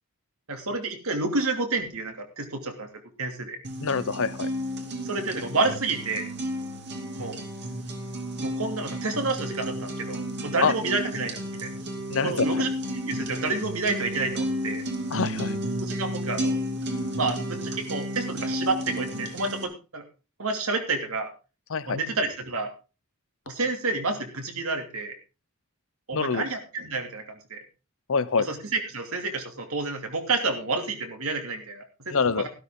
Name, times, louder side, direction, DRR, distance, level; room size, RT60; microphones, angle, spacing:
voice 1, 0.5-2.9 3.2-3.6 5.0-6.2 7.2-7.4 8.4-11.7 12.2-12.7 12.9-14.8 15.8-16.6 17.2-20.0 20.4-21.3 21.9-22.7 23.5-25.1 26.1-27.6 28.4-32.5, right 3 dB, 70° right, 5 dB, 2.7 m, -29 dB
sound 1, 3.6-19.6, equal, 50° right, 2.6 m, -32 dB
voice 2, 3.8-4.5 10.6-10.7 12.1-12.6 15.1-15.6 21.7-22.0 26.1-26.4 28.1-28.5 32.1-32.5, left 5 dB, 65° left, 15 dB, 0.8 m, -25 dB
13.0 x 12.5 x 3.8 m, 0.32 s
head